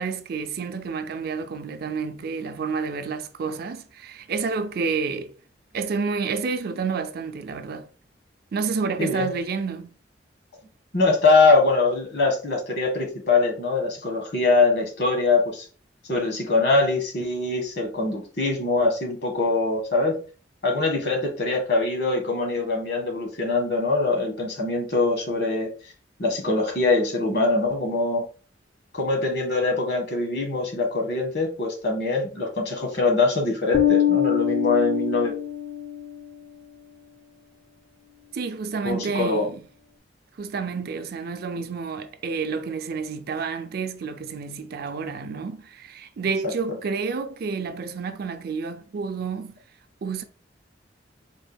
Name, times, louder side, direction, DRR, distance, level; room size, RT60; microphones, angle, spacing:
voice 1, 0.0-5.3 5.7-7.9 8.5-9.9 38.3-39.6 40.4-49.6 50.0-50.2, right 5 dB, 60° right, 0.4 m, -29 dB
voice 2, 9.0-9.3 10.9-15.7 16.1-20.2 20.6-25.7 26.2-28.2 28.9-35.3 38.8-39.4, left 3 dB, 65° left, 1.2 m, -23 dB
Bass guitar, 33.7-36.2, left 11 dB, 45° left, 0.5 m, -23 dB
4.3 x 2.2 x 3.4 m
head